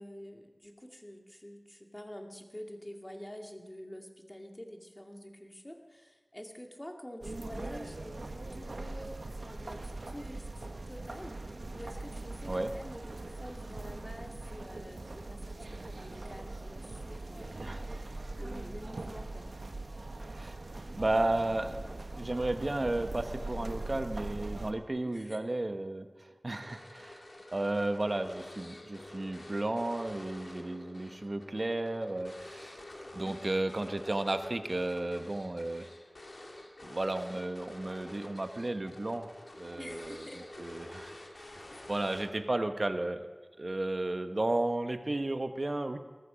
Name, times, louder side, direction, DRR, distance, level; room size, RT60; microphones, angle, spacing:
voice 1, 0.0-17.6 18.4-19.5 25.0-25.4 33.2-33.6 39.7-40.4 41.7-41.9, equal, 25° left, 3 dB, 2.3 m, -47 dB
sound 1, 7.2-24.7, right 2 dB, 85° right, 1.1 m, -41 dB
voice 2, 21.0-27.2 27.5-32.8 33.1-35.9 36.8-39.3 39.6-41.5 41.9-43.3 43.6-46.0, right 2 dB, 55° right, 8 dB, 1.1 m, -33 dB
sound 2, 26.6-42.6, left 1 dB, 80° left, 2.3 m, -49 dB
19.0 x 14.5 x 5.1 m, 1.3 s
wide cardioid pair, 40°, 0 cm